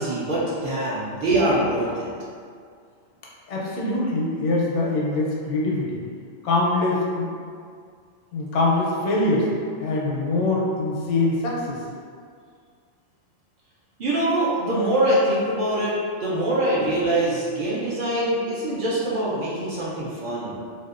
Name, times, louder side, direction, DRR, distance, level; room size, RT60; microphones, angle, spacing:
voice 1, 0.0-2.1 14.0-15.9 16.2-20.6, right 1 dB, 60° right, -7 dB, 0.6 m, -23 dB
voice 2, 3.5-6.0 6.4-7.3 8.3-9.5 9.8-11.8, left 2 dB, 80° left, -4 dB, 0.9 m, -23 dB
2.6 x 2.1 x 2.3 m, 2.1 s
omnidirectional pair, 1.2 m